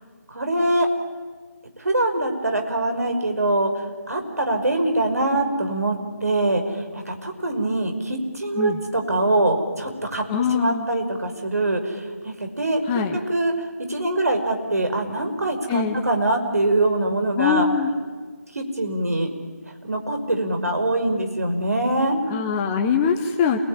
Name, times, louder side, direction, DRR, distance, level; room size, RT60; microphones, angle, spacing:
voice 1, 0.3-0.9 1.8-3.7 4.1-6.6 6.9-10.2 10.5-12.8 13.3-13.5 13.9-17.7 18.6-19.3 19.8-22.2, right 2 dB, 60° right, 4 dB, 5.4 m, -23 dB
voice 2, 10.3-10.9 12.8-13.2 15.7-16.0 17.4-17.9 22.3-23.6, left 6 dB, 10° left, 4 dB, 0.8 m, -22 dB
28.5 x 20.0 x 9.9 m, 1.5 s
figure-of-eight pair, 160°, 9 cm